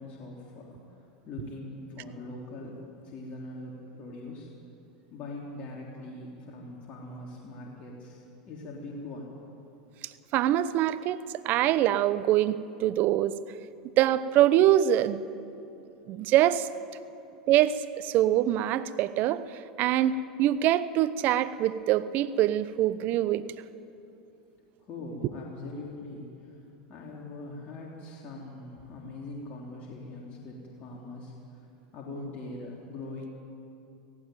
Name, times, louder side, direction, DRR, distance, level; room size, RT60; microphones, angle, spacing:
voice 1, 0.0-4.5 5.1-9.3 24.8-26.6 26.9-31.6 31.9-33.4, left 2 dB, 40° left, -3 dB, 3.4 m, -42 dB
voice 2, 10.3-13.4 14.0-15.2 16.1-16.7 17.5-19.4 19.8-23.4, right 12 dB, 50° right, 14 dB, 0.8 m, -24 dB
17.0 x 16.5 x 9.2 m, 2.7 s
hypercardioid pair, 100°, 4 cm